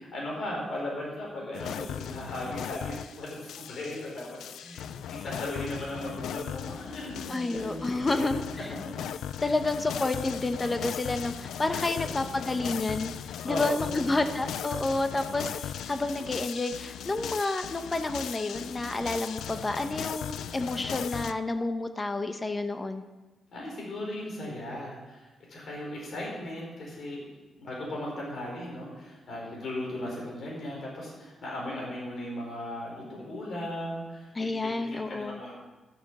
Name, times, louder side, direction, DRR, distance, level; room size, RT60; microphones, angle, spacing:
voice 1, 0.1-8.3 11.9-12.2 13.4-14.1 23.5-27.2 27.5-35.5, left 1 dB, 55° left, -3 dB, 4.7 m, -37 dB
sound 1, 1.5-21.3, left 9 dB, 85° left, 0.4 m, -38 dB
voice 2, 7.3-8.4 9.4-13.1 13.4-23.0 34.3-35.4, left 2 dB, 20° left, 8 dB, 1.0 m, -30 dB
13.0 x 7.2 x 6.2 m, 1.2 s
cardioid pair, 125°, 0 cm